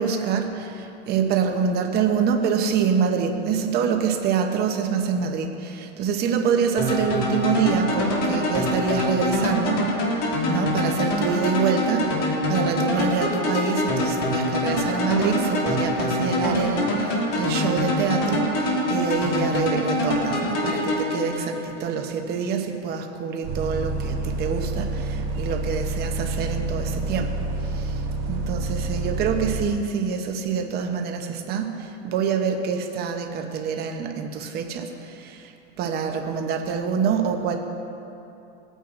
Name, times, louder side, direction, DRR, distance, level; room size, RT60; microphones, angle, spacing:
voice 1, 0.0-27.4 27.6-28.0 28.3-35.5 35.8-37.6, right 6 dB, 25° right, 4 dB, 0.8 m, -26 dB
sound 1, 6.8-21.8, left 1 dB, 40° left, 1.9 m, -24 dB
Bus, 23.4-29.6, right 2 dB, 55° right, 1.8 m, -28 dB
17.0 x 9.1 x 2.5 m, 2.8 s
supercardioid pair, 140°, 37 cm